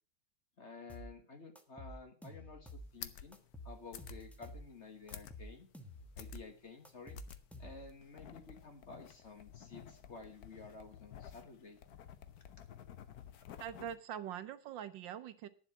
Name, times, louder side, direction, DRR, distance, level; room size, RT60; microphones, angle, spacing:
voice 1, 0.6-3.4 3.6-5.7 6.2-7.2 7.6-11.8, left 4 dB, 40° left, 6 dB, 1.5 m, -52 dB
sound 1, 0.9-1.1 1.6-2.9 3.3-4.7 5.1-6.4 6.8-8.0, equal, ahead, 0.7 m, -50 dB
sound 2, 2.7-14.0, left 9 dB, 60° left, 1.2 m, -53 dB
voice 2, 13.6-15.5, right 9 dB, 70° right, 13 dB, 1.4 m, -43 dB
10.5 x 7.4 x 7.0 m, 0.40 s
omnidirectional pair, 2.2 m